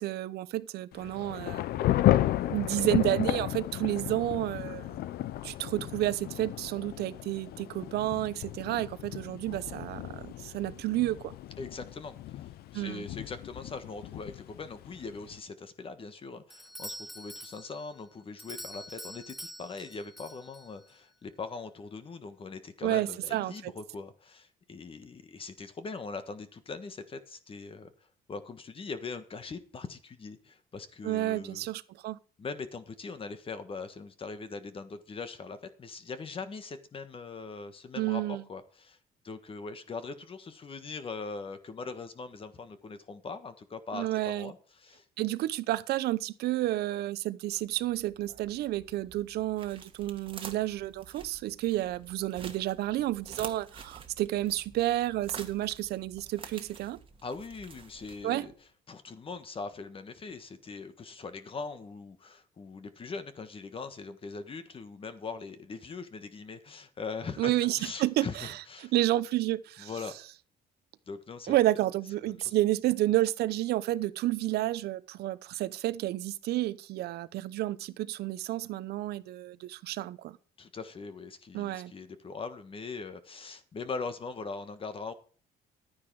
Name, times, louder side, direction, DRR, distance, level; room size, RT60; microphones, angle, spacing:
voice 1, 0.0-1.6 2.5-5.0 5.4-11.3 12.7-13.0 22.8-23.7 31.0-32.2 38.0-38.4 43.9-44.5 45.2-57.0 58.2-58.5 67.4-68.5 68.8-69.9 71.5-80.4 81.5-81.9, right 15 dB, 70° right, 0.8 m, -30 dB
Thunder / Rain, 0.9-15.4, left 14 dB, 65° left, 0.6 m, -33 dB
voice 2, 11.6-27.9 28.3-31.7 32.4-39.0 39.2-45.0 57.2-58.5 58.9-68.9 69.8-70.1 71.1-71.5 72.2-72.5 80.6-85.1, left 4 dB, 30° left, 1.4 m, -41 dB
Doorbell, 16.5-21.0, equal, ahead, 0.8 m, -45 dB
sound 1, 47.5-58.6, right 5 dB, 30° right, 1.7 m, -49 dB
11.5 x 9.6 x 4.7 m
cardioid pair, 110°, 17 cm